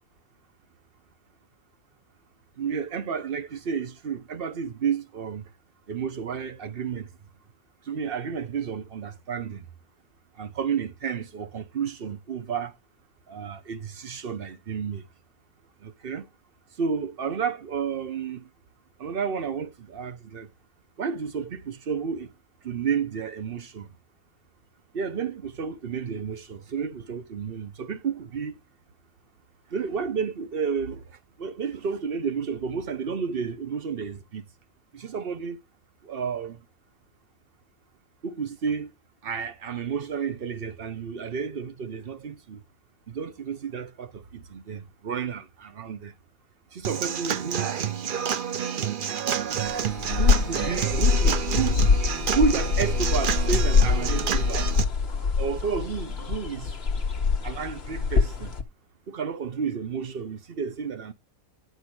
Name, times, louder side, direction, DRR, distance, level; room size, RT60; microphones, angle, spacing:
voice 1, 2.6-5.5 5.9-7.1 7.8-9.6 10.3-12.7 13.3-15.1 15.8-16.3 16.8-18.5 19.0-20.5 21.0-22.3 22.6-23.9 24.9-28.6 29.7-31.1 31.4-34.4 34.9-35.6 36.0-36.6 38.2-38.9 39.2-42.6 43.1-46.1 46.7-47.7 50.2-51.9 52.3-54.7 55.4-56.7 57.4-58.5 59.1-61.1, right 6 dB, 40° right, 1.1 m, -31 dB
Human voice / Acoustic guitar / Drum, 46.8-54.8, right 8 dB, 60° right, 0.5 m, -29 dB
sound 1, 49.6-58.6, left 5 dB, 45° left, 1.4 m, -24 dB
10.5 x 4.6 x 6.2 m
omnidirectional pair, 1.6 m